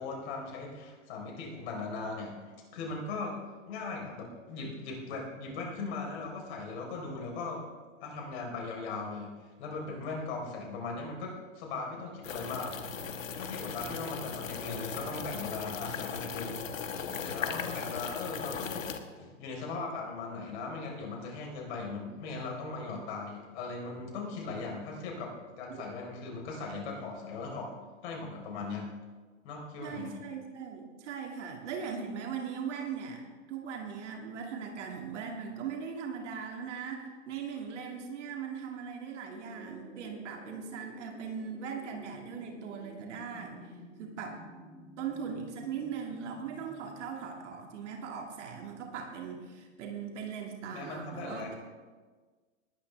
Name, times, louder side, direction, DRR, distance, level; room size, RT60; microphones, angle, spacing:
voice 1, 0.0-3.4 3.7-7.6 8.0-12.8 13.3-16.6 17.2-27.7 28.0-28.9 29.4-30.2 50.7-51.6, left 3 dB, 55° left, 0 dB, 4.3 m, -39 dB
sound 1, 12.2-19.0, left 6 dB, 80° left, 1.3 m, -38 dB
voice 2, 29.8-33.2 33.5-43.6 44.0-44.4 45.0-51.5, right 6 dB, 65° right, 2 dB, 2.4 m, -39 dB
sound 2, 39.3-47.8, left 1 dB, 5° left, 4.4 m, -52 dB
19.5 x 11.0 x 3.4 m, 1.4 s
hypercardioid pair, 115°, 39 cm